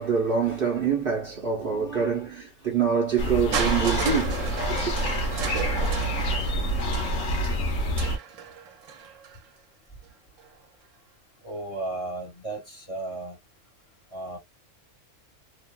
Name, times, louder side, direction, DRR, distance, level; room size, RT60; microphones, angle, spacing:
voice 1, 0.0-4.8, right 6 dB, 50° right, 1.0 m, -25 dB
sound 1, 3.2-8.2, equal, 70° left, 1.1 m, -27 dB
Crushing, 3.5-9.4 10.4-10.5, right 6 dB, 85° right, 1.1 m, -34 dB
voice 2, 11.4-13.4 14.1-14.4, right 2 dB, 25° left, 1.6 m, -34 dB
2.9 x 2.3 x 2.2 m
omnidirectional pair, 1.3 m